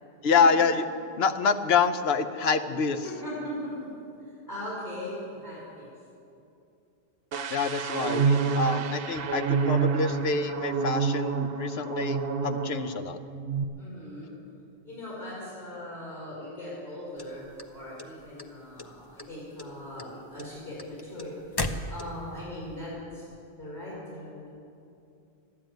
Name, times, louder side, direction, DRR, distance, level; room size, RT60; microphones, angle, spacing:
voice 1, 0.2-0.8 1.2-3.0 7.5-12.2 12.4-13.2, left 5 dB, 70° left, 9 dB, 1.0 m, -26 dB
voice 2, 3.0-3.5 4.2-5.9 10.1-10.2 13.8-14.4 14.8-23.3 23.6-24.5, left 1 dB, 45° left, -9 dB, 5.2 m, -40 dB
sound 1, 7.3-13.0 13.3-13.6, right 5 dB, 60° right, 0.9 m, -28 dB
Blinker in car, 17.2-18.4 18.8-19.3 19.6-22.4, left 2 dB, 25° left, 0.7 m, -35 dB
13.5 x 11.0 x 9.1 m, 2.6 s
omnidirectional pair, 1.1 m